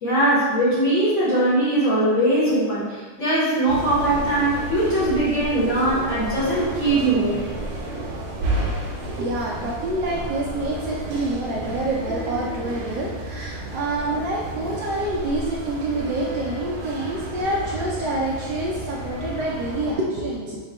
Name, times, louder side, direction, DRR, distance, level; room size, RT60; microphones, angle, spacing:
voice 1, 0.0-7.4, right 1 dB, 45° left, -10 dB, 1.1 m, -21 dB
sound 1, 3.7-20.0, right 1 dB, 90° right, 1.6 m, -31 dB
voice 2, 9.0-20.6, right 1 dB, 70° right, -4 dB, 1.1 m, -27 dB
4.0 x 2.1 x 4.3 m, 1.3 s
omnidirectional pair, 2.2 m